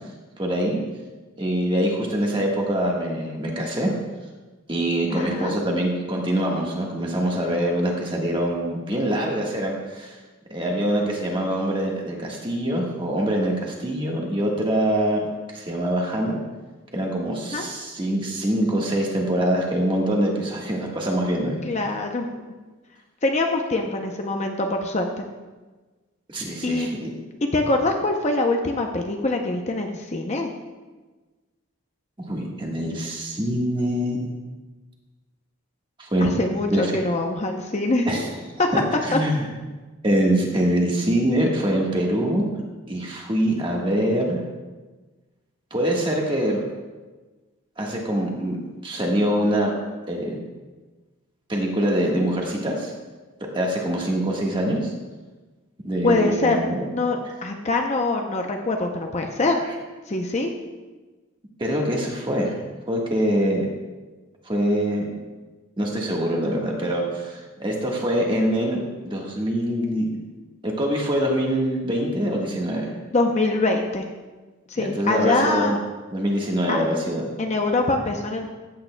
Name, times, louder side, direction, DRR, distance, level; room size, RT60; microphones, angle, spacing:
voice 1, 0.4-0.8 1.4-3.9 4.7-10.1 10.5-16.4 16.9-21.6 26.3-27.1 32.3-34.3 36.0-36.4 36.7-37.0 38.1-38.3 38.7-39.5 40.0-42.4 42.9-44.4 45.7-46.6 47.8-49.7 50.1-50.4 51.5-52.9 53.5-54.9 55.8-56.8 61.6-62.5 62.9-63.7 64.5-65.1 65.8-70.1 70.6-72.9 74.7-75.8 76.1-77.3, right 1 dB, 25° right, -1 dB, 1.4 m, -24 dB
voice 2, 5.1-5.6 17.5-17.7 21.6-22.4 23.2-25.3 26.6-26.9 27.4-30.5 36.2-38.2 38.6-38.7 39.1-39.2 56.0-56.6 56.9-59.6 60.1-60.5 73.1-74.1 74.7-75.8 76.7-76.8 77.4-78.5, left 2 dB, 30° left, 3 dB, 0.6 m, -24 dB
14.5 x 8.6 x 2.2 m, 1.3 s
head